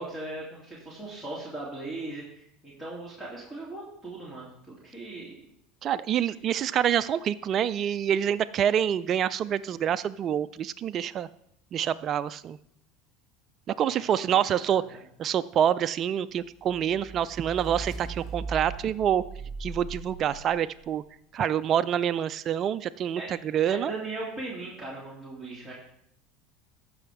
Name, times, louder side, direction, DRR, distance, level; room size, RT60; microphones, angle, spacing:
voice 1, 0.0-5.4 6.2-6.3 13.9-14.0 14.6-14.7 23.2-23.3 23.7-25.7, right 2 dB, 5° left, -5 dB, 2.7 m, -38 dB
voice 2, 5.8-11.3 11.7-12.6 13.7-14.8 15.2-19.2 19.6-21.0 21.3-23.9, right 9 dB, 45° right, 13 dB, 0.3 m, -26 dB
sound 1, 16.6-20.9, right 4 dB, 25° right, 3.9 m, -39 dB
14.0 x 5.6 x 3.5 m, 0.71 s
supercardioid pair, 100°, 0 cm